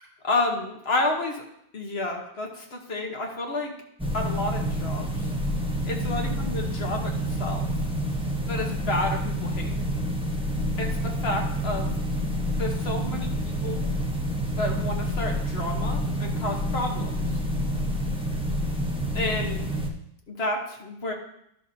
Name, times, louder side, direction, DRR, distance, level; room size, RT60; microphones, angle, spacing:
voice 1, 0.2-1.4 1.7-3.7 4.1-5.3 5.8-7.7 8.5-9.7 10.8-11.9 12.4-13.9 14.6-17.4 19.1-19.7 20.3-21.1, left 2 dB, 40° left, 1 dB, 1.1 m, -30 dB
sound 1, 4.0-19.9, equal, 10° right, 0.3 m, -28 dB
11.5 x 6.7 x 2.7 m, 0.76 s
omnidirectional pair, 2.0 m